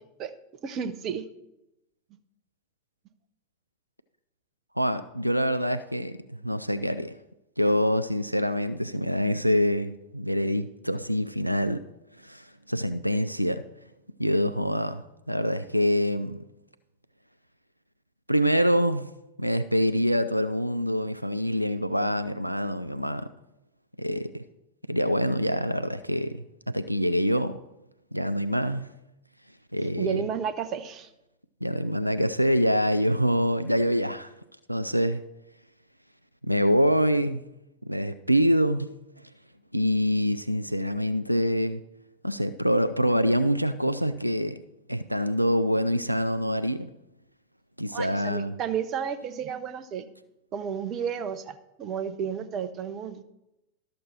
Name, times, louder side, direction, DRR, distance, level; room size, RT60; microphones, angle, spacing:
voice 1, 0.6-1.3 30.0-31.1 47.9-50.1 50.5-53.2, right 7 dB, 35° right, 12 dB, 0.7 m, -32 dB
voice 2, 4.8-7.2 7.6-11.8 12.2-13.6 14.2-16.4 18.3-19.1 19.4-23.3 24.0-24.4 24.9-27.6 28.1-28.9 29.7-30.2 31.6-34.3 34.7-35.2 36.5-37.4 37.8-38.9 39.7-41.8 42.2-44.6 44.9-46.9 47.8-48.5, equal, 90° right, 11 dB, 0.3 m, -25 dB
12.5 x 6.5 x 4.3 m, 0.90 s
figure-of-eight pair, 90°, 0 cm